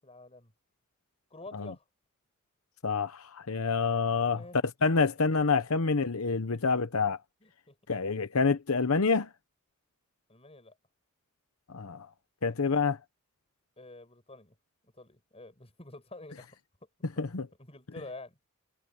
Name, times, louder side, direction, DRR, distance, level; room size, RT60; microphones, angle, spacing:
voice 1, 0.0-0.5 1.3-1.8 4.3-4.6 6.5-6.6 7.4-7.8 10.3-10.7 12.4-12.5 13.8-14.6 14.8-16.6 17.6-18.4, left 2 dB, 30° left, 6.4 m, -48 dB
voice 2, 2.8-4.4 4.8-7.2 7.9-9.3 11.7-12.1 12.4-13.0 17.2-17.5, left 4 dB, 85° left, 0.9 m, -27 dB
head